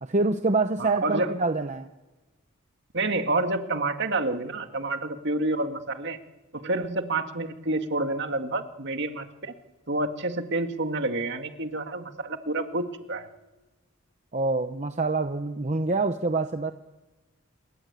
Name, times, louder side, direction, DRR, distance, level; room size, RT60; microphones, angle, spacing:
voice 1, 0.0-1.9 14.3-16.7, right 3 dB, 35° right, 7 dB, 0.9 m, -26 dB
voice 2, 0.8-1.4 2.9-6.2 6.5-9.5 9.9-13.3, right 2 dB, 55° right, 6 dB, 2.0 m, -28 dB
28.0 x 21.5 x 8.4 m, 1.1 s
head